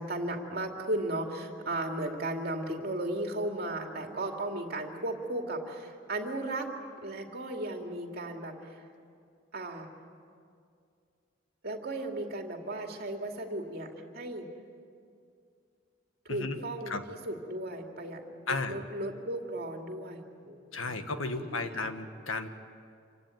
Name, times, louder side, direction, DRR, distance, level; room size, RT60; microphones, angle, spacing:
voice 1, 0.0-6.7 7.0-8.8 9.5-9.9 11.6-14.5 16.2-21.0 21.4-21.9, right 1 dB, 50° right, 2 dB, 2.5 m, -36 dB
voice 2, 18.5-18.8 20.7-22.5, left 3 dB, 85° left, 8 dB, 1.5 m, -34 dB
27.0 x 16.5 x 9.2 m, 2.3 s
head